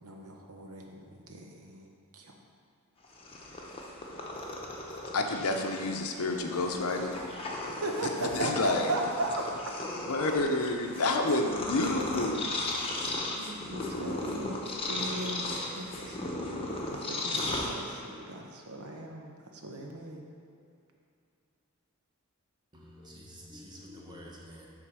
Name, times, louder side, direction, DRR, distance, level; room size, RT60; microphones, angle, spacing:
voice 1, 0.0-2.3 7.6-9.7 13.3-16.4 16.9-17.4 17.7-20.2, right 2 dB, 80° right, 1 dB, 1.0 m, -37 dB
Purr, 3.0-18.2, left 2 dB, 25° left, 0.8 m, -36 dB
voice 2, 5.1-7.2 8.2-8.9 10.1-12.5, left 2 dB, 80° left, 3 dB, 0.7 m, -29 dB
voice 3, 22.7-24.7, equal, 20° right, -3 dB, 1.0 m, -48 dB
7.8 x 3.8 x 6.2 m, 2.5 s
head